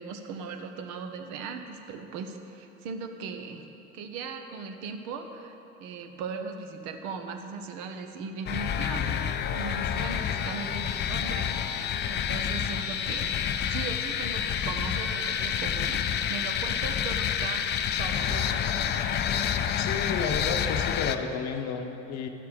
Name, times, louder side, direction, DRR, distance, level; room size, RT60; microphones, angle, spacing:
voice 1, 0.0-3.7 3.9-11.8 12.1-13.4 13.7-17.7 18.0-18.7, right 5 dB, 55° right, 5 dB, 1.0 m, -38 dB
sound 1, 8.5-21.2, left 8 dB, 30° left, 0.5 m, -28 dB
Wind instrument woodwind instrument, 14.9-19.1, left 3 dB, 5° left, 1.0 m, -43 dB
voice 2, 19.8-22.3, left 5 dB, 45° left, 6 dB, 0.8 m, -32 dB
11.5 x 6.7 x 5.2 m, 2.9 s
figure-of-eight pair, 70°, 38 cm